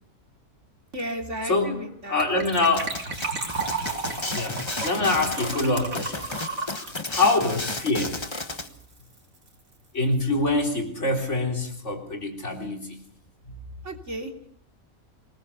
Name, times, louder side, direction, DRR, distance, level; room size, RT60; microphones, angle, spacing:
voice 1, 0.9-2.2 13.8-14.3, right 1 dB, 55° right, 3 dB, 3.5 m, -33 dB
voice 2, 1.4-1.8 2.1-2.9 4.3-4.6 4.8-6.3 7.1-8.2 9.9-13.0, left 2 dB, 55° left, 2 dB, 4.1 m, -25 dB
Gurgling / Trickle dribble / Fill (with liquid), 2.2-8.4 8.7-8.8 9.0-9.2 9.5-9.6, right 3 dB, 70° right, 3.9 m, -33 dB
sound 1, 2.8-8.7, left 2 dB, 20° left, 1.3 m, -33 dB
25.0 x 19.0 x 7.0 m, 0.65 s
omnidirectional pair, 1.5 m